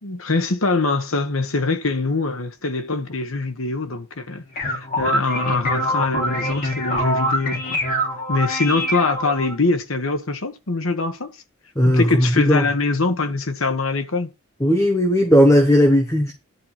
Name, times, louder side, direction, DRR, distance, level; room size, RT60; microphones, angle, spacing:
voice 1, 0.0-7.8 8.3-11.3 11.8-14.3, left 3 dB, 80° left, 1.3 m, -23 dB
sound 1, 4.3-9.5, equal, 40° left, 2.8 m, -24 dB
voice 2, 11.7-12.7 14.6-16.3, equal, 15° left, 1.3 m, -16 dB
11.0 x 4.6 x 5.8 m
head